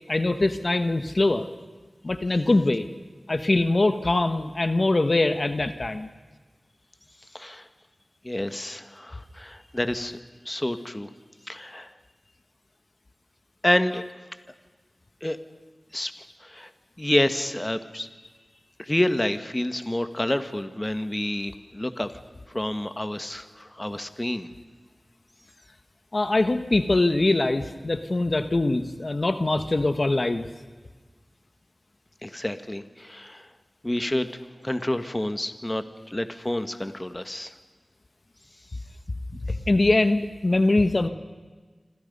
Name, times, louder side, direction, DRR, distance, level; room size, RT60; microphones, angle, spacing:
voice 1, 0.1-1.5 2.0-2.9 3.3-6.1 26.1-30.5 39.3-41.1, left 2 dB, 50° left, 9 dB, 1.3 m, -23 dB
voice 2, 7.3-7.7 8.2-10.2 10.4-11.1 11.5-11.9 13.6-14.0 15.2-15.4 15.9-16.1 16.4-16.7 17.0-18.1 18.8-22.2 22.5-24.5 32.2-33.5 33.8-34.3 34.6-37.5, left 1 dB, 20° left, 10 dB, 1.5 m, -28 dB
27.0 x 26.5 x 5.5 m, 1.4 s
wide cardioid pair, 60°, 0 cm